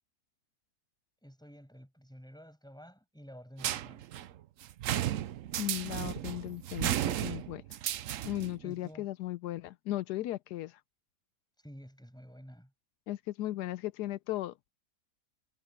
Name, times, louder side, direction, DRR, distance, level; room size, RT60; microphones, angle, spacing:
voice 1, 1.2-4.3 8.6-9.1 11.6-12.7, equal, ahead, 7.1 m, -51 dB
sound 1, 3.6-8.6, right 12 dB, 65° right, 0.9 m, -34 dB
voice 2, 5.6-7.6 8.2-10.8 13.1-14.6, left 15 dB, 85° left, 1.2 m, -36 dB
omnidirectional pair, 1.7 m